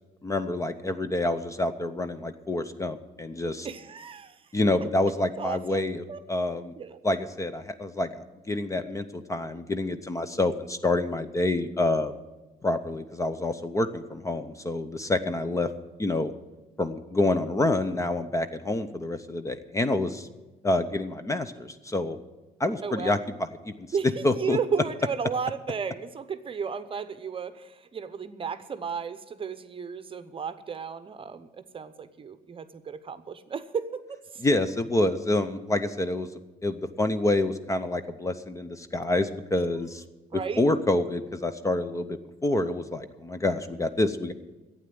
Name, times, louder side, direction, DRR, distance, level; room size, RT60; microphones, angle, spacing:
voice 1, 0.2-3.7 4.5-6.7 7.0-12.2 12.6-15.7 16.0-16.3 16.8-20.3 20.6-22.2 22.6-23.2 23.6-23.9 24.2-24.6 34.4-36.3 36.6-40.0 40.3-44.3, left 2 dB, 20° left, 10 dB, 0.7 m, -27 dB
voice 2, 3.6-4.4 5.4-5.8 6.1-6.2 6.8-7.0 22.8-23.2 23.9-34.4 40.3-40.6, right 6 dB, 30° right, 12 dB, 0.8 m, -34 dB
11.5 x 8.8 x 9.4 m, 1.1 s
cardioid pair, 110°, 17 cm